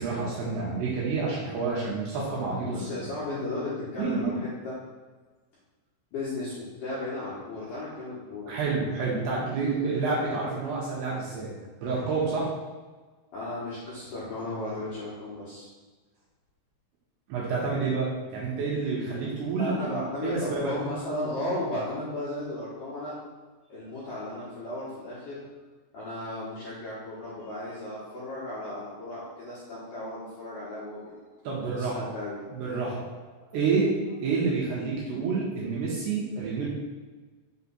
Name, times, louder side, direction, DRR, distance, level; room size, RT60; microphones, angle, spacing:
voice 1, 0.0-2.7 4.0-4.4 8.5-11.5 11.8-12.5 17.3-20.7 31.4-32.1 32.5-33.0 33.5-33.9 34.2-36.7, right 4 dB, 70° right, -5 dB, 2.8 m, -29 dB
voice 2, 2.6-4.8 6.1-8.6 13.3-15.7 19.6-23.2 23.7-25.4 25.9-31.2 31.7-32.4, left 1 dB, 65° left, -9 dB, 2.1 m, -35 dB
7.1 x 3.3 x 5.6 m, 1.3 s
omnidirectional pair, 5.7 m